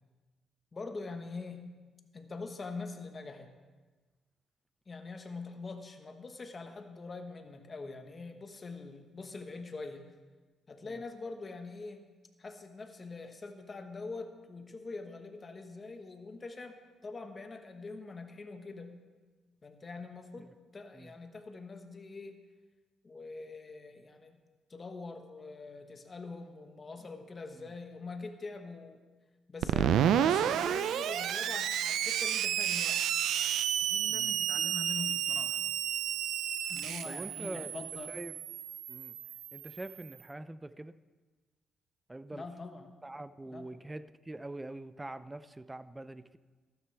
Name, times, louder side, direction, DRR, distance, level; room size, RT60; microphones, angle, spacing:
voice 1, 0.7-1.7 2.1-3.5 4.9-10.1 10.7-12.1 12.4-19.0 19.6-20.5 20.7-22.4 23.0-24.4 24.7-29.0 29.5-33.0 33.9-35.6 36.7-38.1 42.3-43.0 43.4-43.7, left 3 dB, 30° left, 6 dB, 1.3 m, -44 dB
Screech, 29.6-40.1, right 9 dB, 80° right, 0.4 m, -31 dB
voice 2, 37.1-38.3 38.9-39.1 39.5-40.9 42.1-42.4 43.0-46.4, right 2 dB, 15° right, 14 dB, 0.4 m, -44 dB
14.0 x 12.5 x 3.4 m, 1.3 s
cardioid pair, 90°, 0 cm